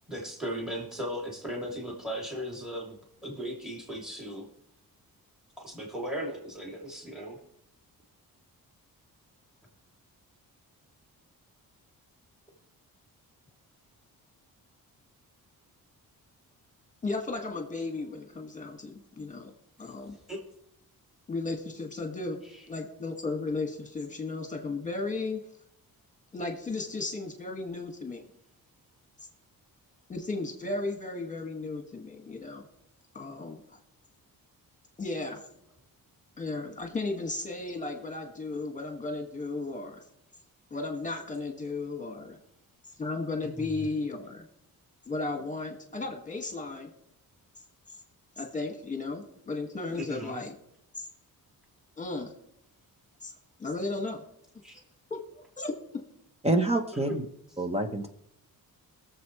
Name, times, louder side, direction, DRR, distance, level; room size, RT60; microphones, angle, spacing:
voice 1, 0.1-3.0 3.2-4.5 5.6-7.4 20.3-20.4 22.4-22.6 43.4-43.9 49.9-50.5 54.6-54.8 56.9-57.2, equal, ahead, -1 dB, 2.8 m, -37 dB
voice 2, 17.0-19.5 19.8-20.2 21.3-22.4 22.7-25.4 26.3-28.3 30.1-32.7 33.1-33.6 35.0-35.4 36.4-40.0 40.7-42.4 43.0-44.4 45.1-46.9 48.4-50.5 51.0-51.1 52.0-52.3 53.2-53.3 53.6-54.2 55.1-56.0, left 3 dB, 20° left, 3 dB, 1.9 m, -35 dB
voice 3, 56.4-57.2 57.6-58.1, right 2 dB, 15° right, 6 dB, 0.9 m, -26 dB
22.0 x 7.4 x 3.2 m, 0.76 s
cardioid pair, 125°, 36 cm